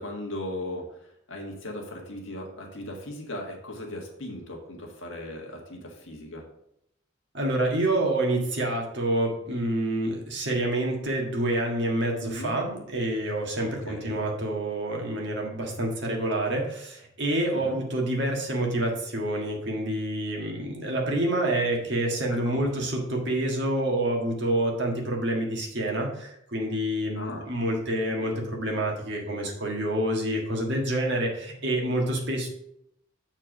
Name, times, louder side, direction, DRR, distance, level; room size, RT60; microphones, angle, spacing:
voice 1, 0.0-6.4 12.2-12.5 13.6-14.2 17.5-17.8 22.3-22.9 27.1-27.5, left 1 dB, 60° left, 0 dB, 1.6 m, -38 dB
voice 2, 7.3-32.5, right 1 dB, 55° right, 0 dB, 1.6 m, -27 dB
7.3 x 4.5 x 5.0 m, 0.77 s
head